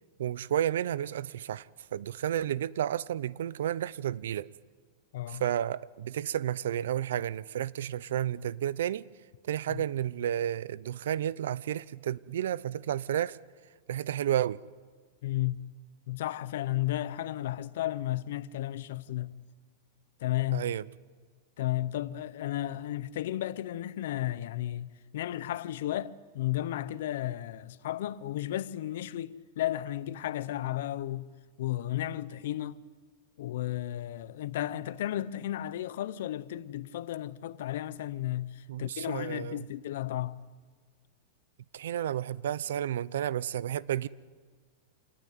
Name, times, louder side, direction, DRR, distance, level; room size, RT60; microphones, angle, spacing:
voice 1, 0.2-4.5 5.3-9.0 9.4-13.4 13.9-14.6 20.5-20.9 38.7-39.7 41.7-44.1, right 11 dB, 75° right, 0.6 m, -31 dB
voice 2, 15.2-15.6 16.1-19.3 20.2-20.6 21.6-31.3 31.6-32.8 33.4-40.4, left 13 dB, 60° left, 0.8 m, -33 dB
27.0 x 19.5 x 9.3 m
supercardioid pair, 175°, 0 cm